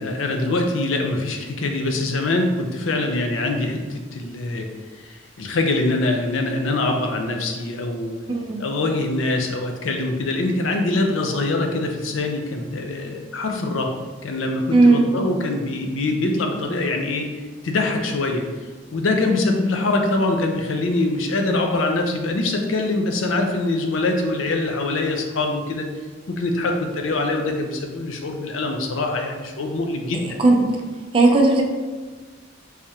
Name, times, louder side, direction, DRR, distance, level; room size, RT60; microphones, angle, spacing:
voice 1, 0.0-4.7 5.0-8.1 8.6-13.9 14.2-17.3 17.6-18.5 18.9-25.9 26.3-30.4, left 2 dB, 90° left, 3 dB, 0.5 m, -23 dB
voice 2, 8.3-8.6 14.7-15.1 30.1-30.8 31.1-31.6, right 2 dB, 25° right, 1 dB, 0.4 m, -16 dB
3.5 x 3.3 x 2.8 m, 1.4 s
head